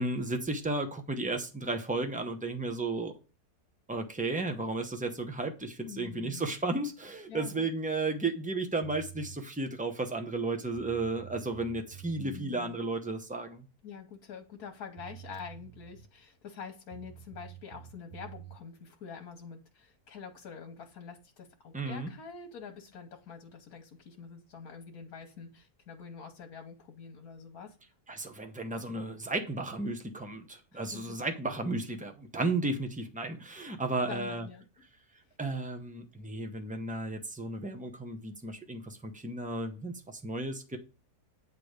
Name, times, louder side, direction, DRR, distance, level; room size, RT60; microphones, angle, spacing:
voice 1, 0.0-3.1 3.9-13.6 21.7-22.1 28.1-34.5 35.4-40.8, right 2 dB, 5° right, 0.7 m, -34 dB
voice 2, 5.9-6.5 7.3-7.7 12.2-12.8 13.8-27.8 30.7-31.2 34.1-34.6 35.3-35.4, left 6 dB, 75° left, 1.4 m, -46 dB
sound 1, 8.8-9.4 10.4-10.5 10.7-12.4 14.6-14.7 15.0-16.2 16.9-18.6, right 12 dB, 65° right, 0.9 m, -49 dB
9.2 x 3.4 x 6.5 m
omnidirectional pair, 1.6 m